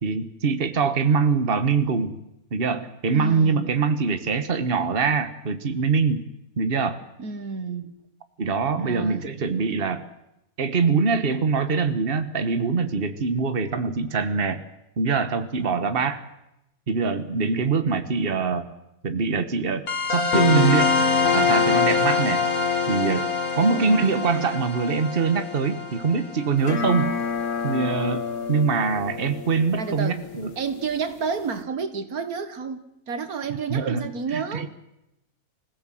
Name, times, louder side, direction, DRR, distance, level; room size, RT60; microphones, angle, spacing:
voice 1, 0.0-2.2 2.5-6.2 6.6-7.0 8.4-10.0 10.6-14.6 15.0-16.2 16.9-18.7 19.0-19.8 20.1-20.9 21.3-22.4 22.9-23.2 23.5-27.1 27.6-30.5 33.7-34.7, right 5 dB, 40° right, 1.5 m, -23 dB
voice 2, 3.1-3.7 7.2-7.9 8.8-9.3 23.6-24.1 29.8-30.2 30.6-34.7, right 5 dB, 90° right, 2.0 m, -30 dB
sound 1, 19.9-27.0, left 5 dB, 80° left, 2.2 m, -24 dB
sound 2, 26.6-31.6, left 5 dB, 60° left, 1.5 m, -31 dB
25.5 x 16.0 x 7.7 m
omnidirectional pair, 1.5 m